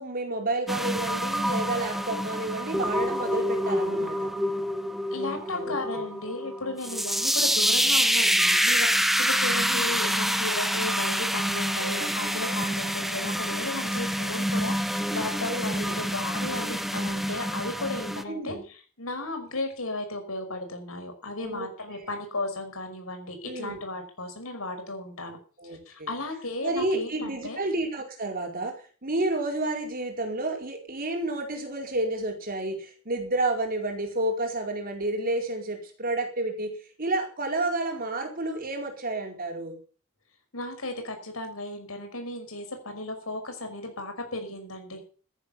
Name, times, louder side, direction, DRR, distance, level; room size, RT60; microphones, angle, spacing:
voice 1, 0.0-4.3 5.1-6.0 9.7-10.0 10.3-10.5 15.5-16.0 18.3-18.6 21.4-21.7 23.4-23.8 25.6-26.1 26.6-28.7 29.0-36.7 37.0-39.8, right 2 dB, 45° right, 3 dB, 4.6 m, -30 dB
sound 1, 0.7-18.2, equal, ahead, 1.0 m, -27 dB
voice 2, 3.7-4.1 5.1-25.4 25.6-27.6 40.5-45.0, left 2 dB, 90° left, 5 dB, 5.5 m, -35 dB
13.5 x 11.0 x 7.1 m, 0.40 s
head